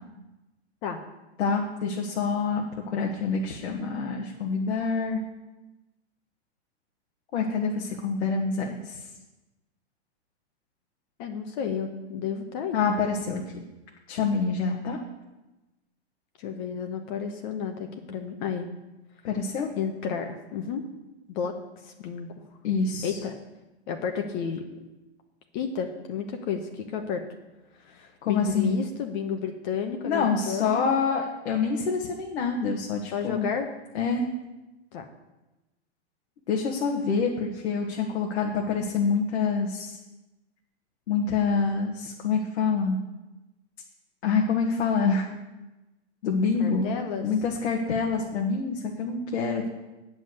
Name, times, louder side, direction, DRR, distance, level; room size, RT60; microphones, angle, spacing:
voice 1, 1.4-5.2 7.3-9.0 12.7-13.4 14.1-15.0 19.2-19.7 22.6-23.2 28.2-28.8 30.0-33.5 33.9-34.3 36.5-40.0 41.1-43.0 44.2-45.3 46.2-46.9 47.2-49.7, left 5 dB, 75° left, 0 dB, 1.6 m, -26 dB
voice 2, 11.2-12.8 16.4-18.7 19.8-20.8 21.3-21.5 21.8-22.3 23.0-23.3 23.9-24.6 25.5-27.2 27.8-31.0 33.1-33.7 34.9-35.0 46.6-47.3, left 7 dB, 45° left, 4 dB, 1.1 m, -32 dB
8.9 x 5.6 x 7.9 m, 1.0 s
hypercardioid pair, 140°, 34 cm